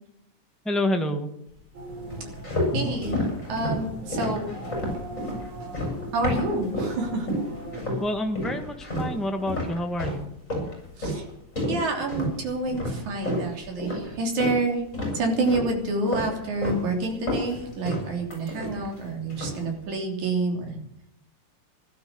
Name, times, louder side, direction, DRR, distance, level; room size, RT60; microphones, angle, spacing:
voice 1, 0.6-1.3 8.0-10.3, left 1 dB, ahead, 4 dB, 0.4 m, -28 dB
sound 1, 1.7-7.8, right 1 dB, 60° right, 5.0 m, -39 dB
sound 2, 2.1-7.0 7.3-8.1 8.4-14.6 14.9-15.7 16.1-16.8 17.1-19.0 19.3-19.7, left 1 dB, 25° left, 6.7 m, -30 dB
voice 2, 2.7-4.5 6.1-7.3 11.0-11.2 11.7-14.8 15.1-20.7, right 2 dB, 80° right, 1 dB, 4.6 m, -28 dB
16.0 x 12.0 x 6.9 m, 0.76 s
omnidirectional pair, 3.3 m